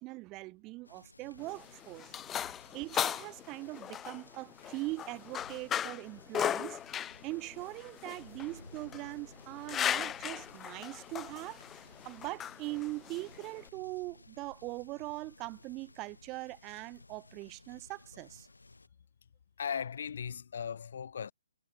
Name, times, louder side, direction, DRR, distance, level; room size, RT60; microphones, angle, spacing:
voice 1, 0.0-2.1 2.7-11.6 12.0-18.5, right 22 dB, 25° right, 2.0 m, -41 dB
sound 1, 0.8-18.9, left 3 dB, 85° left, 4.9 m, -57 dB
sound 2, 1.4-13.7, left 10 dB, 15° left, 0.5 m, -37 dB
voice 2, 19.6-21.3, left 7 dB, 60° left, 1.2 m, -37 dB
figure-of-eight pair, 135°, 0 cm